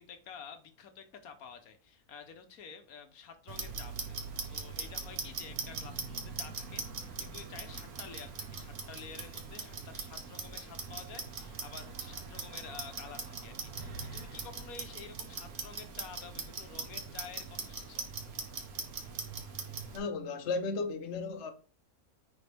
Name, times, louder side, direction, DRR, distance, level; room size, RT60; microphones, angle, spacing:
voice 1, 0.0-18.1, left 6 dB, 75° left, 1.3 m, -50 dB
Clock, 3.5-20.0, right 5 dB, 80° right, 1.6 m, -41 dB
voice 2, 19.9-21.5, left 3 dB, 55° left, 1.0 m, -34 dB
9.5 x 3.9 x 3.4 m
omnidirectional pair, 1.6 m